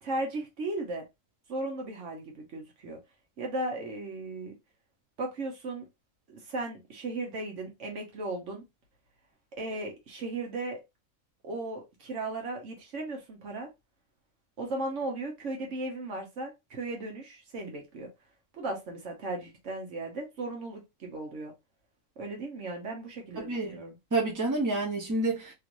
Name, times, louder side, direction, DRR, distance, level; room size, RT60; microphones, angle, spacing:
voice 1, 0.0-1.0 1.5-3.0 3.4-4.5 5.2-5.8 6.3-8.6 9.5-10.8 11.4-13.7 14.6-18.1 18.5-21.5 22.2-24.0, right 2 dB, 65° right, 1.3 m, -36 dB
voice 2, 23.4-23.8 24.1-25.5, right 2 dB, 15° right, 0.9 m, -29 dB
3.1 x 3.0 x 2.5 m
omnidirectional pair, 1.4 m